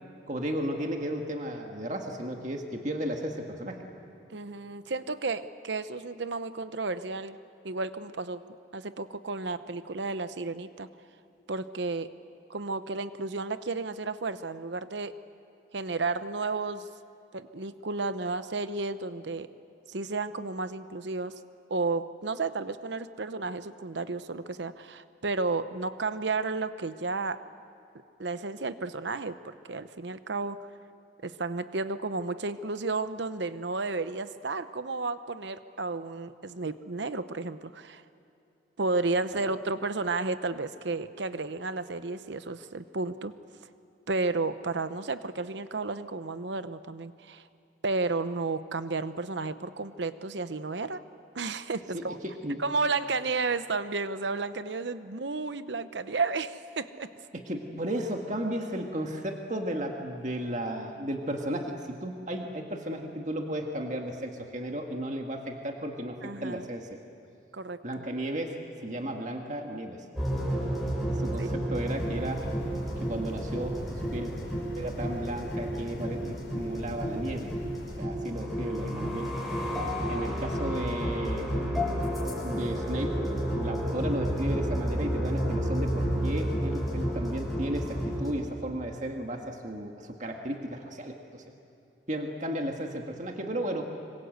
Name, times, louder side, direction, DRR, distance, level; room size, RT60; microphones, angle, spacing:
voice 1, 0.3-3.8 39.3-39.4 51.9-52.6 57.3-66.9 67.8-70.0 71.2-72.4 73.0-74.3 74.8-77.5 77.9-79.3 80.1-81.5 82.4-83.2 83.5-91.4 92.1-93.8, right 1 dB, 40° right, 2 dB, 1.9 m, -34 dB
voice 2, 4.3-7.4 7.6-8.4 8.7-10.9 11.5-12.1 12.5-15.1 15.7-16.9 17.3-19.5 19.9-21.3 21.7-27.4 28.2-30.6 31.2-38.0 38.8-43.3 44.1-47.4 47.8-51.0 51.3-52.2 52.6-57.1 66.2-66.7 67.5-67.8 71.4-71.5, right 3 dB, 70° right, 12 dB, 0.9 m, -32 dB
sound 1, 70.2-88.3, equal, ahead, 6.1 m, -31 dB
sound 2, 71.9-78.0, equal, 75° left, 3.2 m, -41 dB
26.0 x 25.0 x 8.0 m, 2.7 s
head